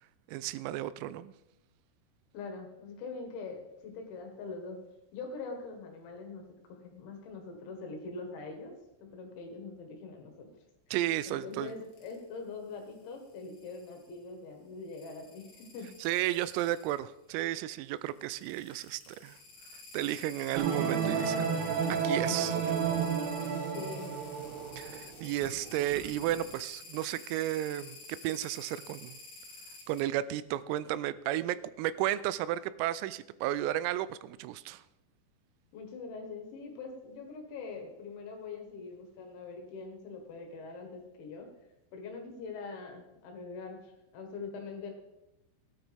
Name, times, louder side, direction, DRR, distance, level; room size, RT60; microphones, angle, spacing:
voice 1, 0.3-1.3 10.9-11.7 16.0-19.4 19.9-21.6 21.9-22.8 24.7-29.2 29.9-34.8, right 13 dB, 90° right, 16 dB, 3.3 m, -33 dB
voice 2, 2.3-4.8 5.1-8.7 9.0-10.5 11.3-15.9 23.7-24.1 35.7-41.5 41.9-44.9, left 4 dB, 70° left, 2 dB, 3.6 m, -43 dB
sound 1, 11.5-12.2 12.8-14.1 14.8-17.0 18.1-30.0, left 3 dB, 50° left, 3.0 m, -50 dB
sound 2, 20.5-26.4, right 6 dB, 70° right, 2.5 m, -32 dB
17.0 x 9.3 x 3.5 m, 0.93 s
omnidirectional pair, 5.9 m